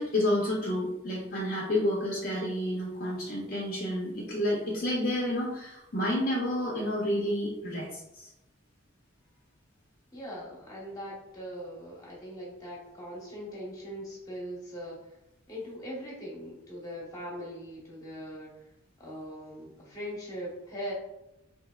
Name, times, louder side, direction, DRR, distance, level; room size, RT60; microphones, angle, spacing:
voice 1, 0.0-8.3, left 1 dB, 45° left, -4 dB, 0.5 m, -30 dB
voice 2, 10.1-15.2 15.5-18.7 19.0-20.9, equal, 15° left, -4 dB, 0.9 m, -41 dB
3.3 x 2.8 x 2.2 m, 0.89 s
head